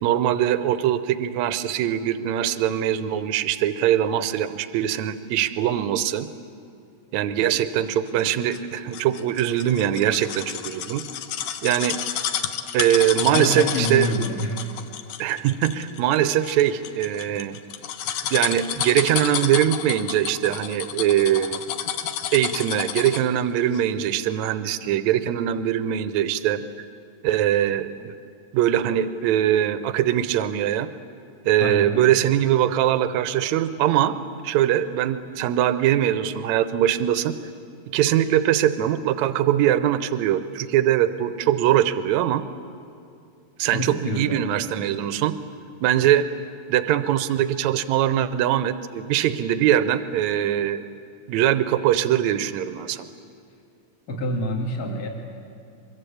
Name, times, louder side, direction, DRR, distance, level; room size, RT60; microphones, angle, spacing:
voice 1, 0.0-6.3 7.1-11.1 11.6-12.0 12.7-14.1 15.2-17.6 18.3-21.6 22.3-26.6 27.2-28.1 28.5-30.9 31.5-34.1 34.4-37.3 37.9-42.5 43.6-45.4 45.8-46.3 46.7-50.8 51.3-53.1, right 11 dB, 80° right, 12 dB, 2.1 m, -22 dB
sound 1, 8.2-23.4 23.7-23.8, left 9 dB, 80° left, 2.4 m, -31 dB
voice 2, 13.2-14.9 15.7-15.9 31.6-32.1 43.7-44.5 54.1-55.1, equal, 35° left, 2 dB, 2.7 m, -27 dB
23.5 x 22.5 x 8.6 m, 2.5 s
omnidirectional pair, 3.3 m